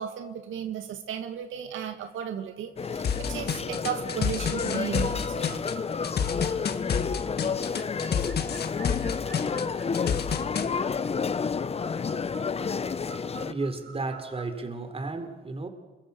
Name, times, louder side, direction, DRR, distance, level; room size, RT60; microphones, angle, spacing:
voice 1, 0.0-5.5, right 9 dB, 80° right, 5 dB, 2.2 m, -35 dB
sound 1, 2.8-13.5, left 5 dB, 30° left, 0.8 m, -30 dB
sound 2, 3.0-10.7, left 7 dB, 55° left, 1.9 m, -29 dB
sound 3, 3.5-14.6, right 6 dB, 65° right, 4.9 m, -50 dB
voice 2, 13.3-15.7, right 3 dB, 30° right, 7 dB, 3.9 m, -33 dB
28.0 x 23.0 x 7.1 m, 1.3 s
cardioid pair, 90°, 20 cm